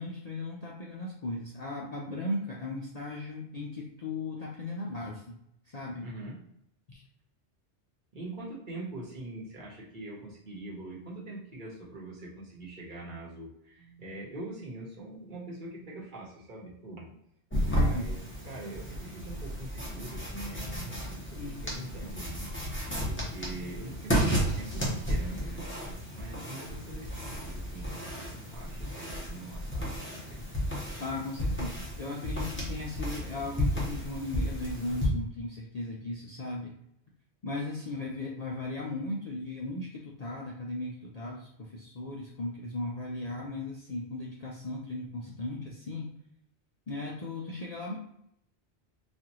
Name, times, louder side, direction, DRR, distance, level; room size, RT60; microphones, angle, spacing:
voice 1, 0.0-5.4 5.7-6.1 6.9-7.0 17.7-18.1 21.4-21.9 31.0-36.7 37.4-46.1 46.9-48.0, left 2 dB, 50° left, -2 dB, 0.5 m, -37 dB
voice 2, 6.0-6.4 8.1-17.1 17.6-18.2 18.4-22.5 23.1-25.6 26.1-30.4, right 2 dB, 45° right, -4 dB, 1.1 m, -43 dB
sound 1, 17.5-35.1, equal, 10° left, 0.9 m, -33 dB
4.1 x 2.5 x 2.9 m, 0.75 s
omnidirectional pair, 1.2 m